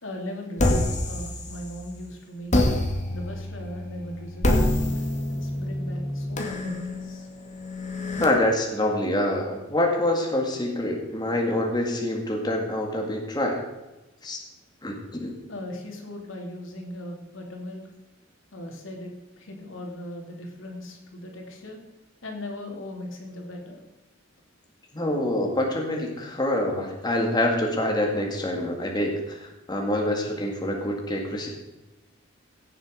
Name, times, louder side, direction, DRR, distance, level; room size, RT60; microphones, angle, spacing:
voice 1, 0.0-2.5 3.1-4.9 5.3-7.3 15.5-17.9 18.5-21.8 22.2-23.8, left 1 dB, 85° left, 2 dB, 2.7 m, -38 dB
sound 1, 0.6-1.9 2.5-8.2, left 1 dB, 40° left, 2.1 m, -26 dB
voice 2, 8.2-13.6 14.2-14.4 14.8-15.3 24.9-31.5, left 1 dB, 20° left, 1 dB, 2.1 m, -26 dB
16.5 x 7.4 x 5.1 m, 1.1 s
head